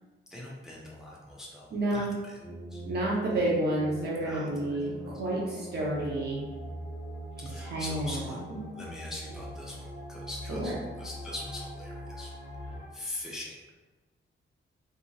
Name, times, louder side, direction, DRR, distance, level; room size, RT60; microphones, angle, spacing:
voice 1, 0.3-2.4 2.7-2.8 4.2-4.5 7.4-8.5 8.7-12.3 12.9-13.6, left 1 dB, 5° right, -4 dB, 0.4 m, -42 dB
voice 2, 1.7-2.1 2.9-6.4 7.4-8.6 10.5-10.8, right 1 dB, 55° right, -6 dB, 0.6 m, -30 dB
sound 1, 2.4-12.9, equal, 55° left, 0.7 m, -42 dB
2.8 x 2.6 x 2.3 m, 1.3 s
wide cardioid pair, 170°, 21 cm